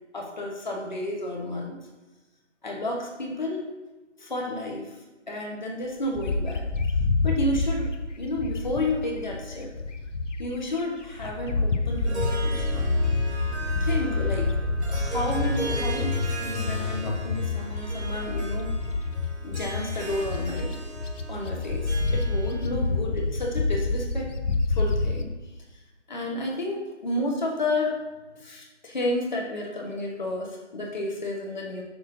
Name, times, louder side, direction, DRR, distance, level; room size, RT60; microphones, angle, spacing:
voice 1, 0.1-1.8 2.6-3.7 4.2-4.9 5.3-6.6 7.2-7.9 8.2-9.7 10.4-12.9 13.8-14.5 14.9-18.7 19.4-20.8 21.3-24.3 24.7-25.3 26.1-28.0 28.3-31.8, left 1 dB, 40° left, -1 dB, 1.4 m, -31 dB
Bird, 6.2-10.6 11.0-25.2, left 3 dB, 85° left, 0.9 m, -28 dB
Harp, 11.9-22.8, right 3 dB, 65° right, 2.2 m, -38 dB
7.0 x 6.5 x 4.0 m, 1.1 s
hypercardioid pair, 175°, 36 cm